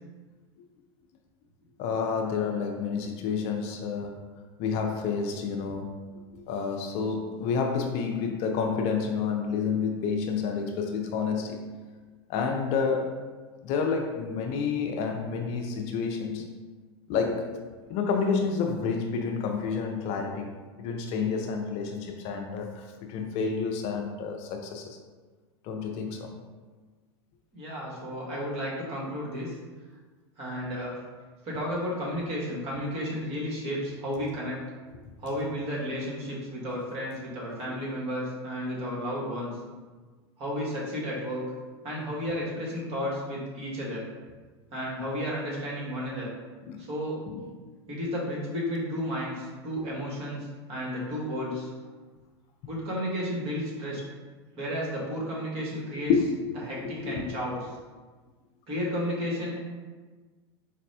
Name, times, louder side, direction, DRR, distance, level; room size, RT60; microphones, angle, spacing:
voice 1, 1.8-4.3 4.6-6.0 6.3-11.7 12.3-13.2 13.6-16.5 17.1-17.6 17.9-25.0 25.6-26.3 37.7-37.8 46.6-46.8 47.3-47.4 56.1-56.3 56.8-57.2, left 5 dB, 50° left, 3 dB, 0.5 m, -29 dB
voice 2, 27.5-29.5 30.4-31.0 31.4-34.6 35.2-39.6 40.4-41.4 41.8-44.1 44.7-46.3 46.8-47.2 47.9-51.7 52.7-54.0 54.6-57.7 58.7-59.6, equal, 45° right, -4 dB, 1.4 m, -32 dB
4.7 x 2.1 x 2.7 m, 1.4 s
hypercardioid pair, 100°, 14 cm